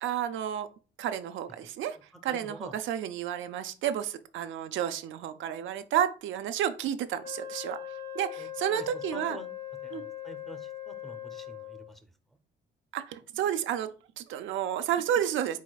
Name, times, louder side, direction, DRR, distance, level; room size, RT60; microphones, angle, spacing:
voice 1, 0.0-0.7 1.0-2.0 2.2-7.8 8.1-9.4 9.9-10.0 12.9-13.9 14.2-15.6, right 10 dB, 75° right, 9 dB, 0.4 m, -31 dB
voice 2, 2.3-2.7 8.4-9.5 9.8-12.1, right 1 dB, ahead, 8 dB, 0.6 m, -46 dB
Wind instrument woodwind instrument, 7.2-12.0, left 10 dB, 50° left, 1.1 m, -40 dB
4.7 x 3.9 x 2.3 m, 0.35 s
cardioid pair, 90°, 20 cm